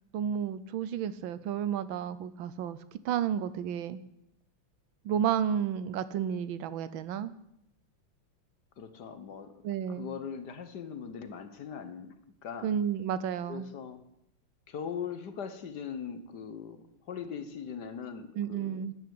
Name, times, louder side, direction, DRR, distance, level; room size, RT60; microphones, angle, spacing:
voice 1, 0.1-2.8 3.0-4.0 5.0-7.3 9.6-10.1 12.6-13.7 18.4-18.9, right 9 dB, 70° right, 15 dB, 1.5 m, -31 dB
voice 2, 8.8-9.5 10.0-12.2 12.4-12.7 13.5-14.0 14.7-18.8, left 7 dB, 55° left, 10 dB, 1.5 m, -40 dB
13.0 x 9.6 x 7.8 m, 0.79 s
omnidirectional pair, 2.4 m